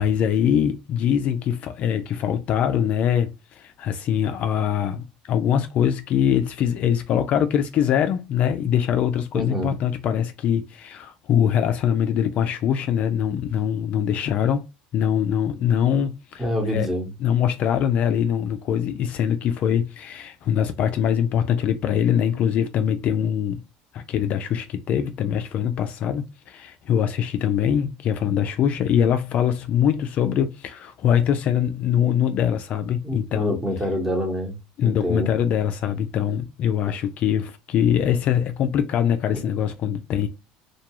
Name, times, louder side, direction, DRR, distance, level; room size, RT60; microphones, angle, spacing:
voice 1, 0.0-14.6 14.9-16.4 16.7-16.9 17.2-23.6 23.9-33.5 34.8-40.3, left 9 dB, 50° left, 0.3 m, -23 dB
voice 2, 9.3-9.7 16.4-17.1 33.0-34.6 34.8-35.3, equal, 10° right, 0.9 m, -26 dB
2.3 x 2.3 x 2.8 m
cardioid pair, 120°, 3 cm